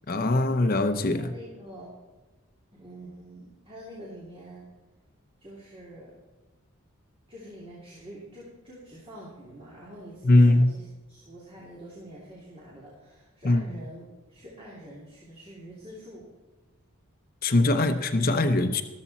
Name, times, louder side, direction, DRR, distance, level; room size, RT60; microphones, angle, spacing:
voice 1, 0.1-1.3 10.2-10.7 13.4-13.6 17.4-18.8, left 2 dB, 45° left, 8 dB, 0.8 m, -21 dB
voice 2, 1.1-1.9 2.7-4.7 5.4-6.1 7.3-14.0 14.3-16.3, right 1 dB, 25° right, -6 dB, 2.9 m, -46 dB
13.5 x 13.0 x 4.2 m, 1.3 s
head